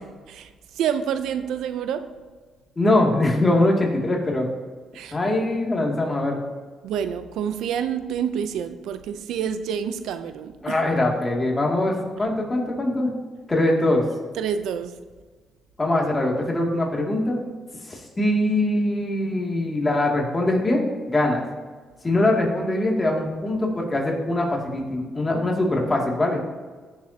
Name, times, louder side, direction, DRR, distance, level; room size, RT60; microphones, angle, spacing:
voice 1, 0.8-2.1 4.9-5.2 6.8-10.8 14.4-15.0, right 8 dB, 85° right, 11 dB, 0.5 m, -28 dB
voice 2, 2.8-4.5 5.1-6.4 10.6-13.1 13.5-14.0 15.8-17.4 17.9-20.8 21.1-21.4 22.0-26.4, left 1 dB, 25° left, -1 dB, 2.5 m, -22 dB
15.5 x 7.2 x 2.9 m, 1.4 s
cardioid pair, 90°, 0 cm